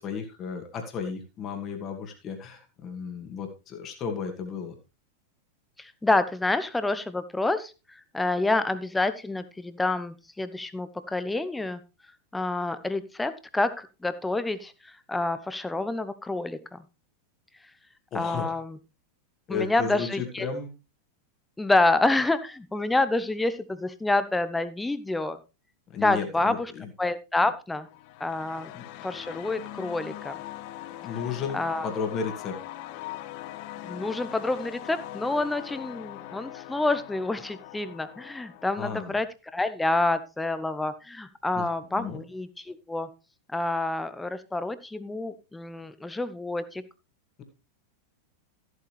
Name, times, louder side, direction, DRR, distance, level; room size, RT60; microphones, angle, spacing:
voice 1, 0.0-4.8 18.1-18.5 19.5-20.7 25.9-26.9 28.7-28.8 30.8-32.6 38.8-39.1 41.6-42.2, left 6 dB, 30° left, 4 dB, 2.4 m, -34 dB
voice 2, 5.8-11.8 12.3-16.8 18.1-18.8 19.5-20.5 21.6-25.4 26.0-26.7 27.0-27.9 28.2-28.7 29.0-30.3 31.5-31.9 33.8-39.3 39.5-43.1 43.5-46.8, left 2 dB, 10° left, 13 dB, 1.0 m, -28 dB
sound 1, 27.8-38.9, left 14 dB, 45° left, 0.7 m, -41 dB
14.0 x 8.2 x 3.3 m, 0.28 s
figure-of-eight pair, 90°, 0 cm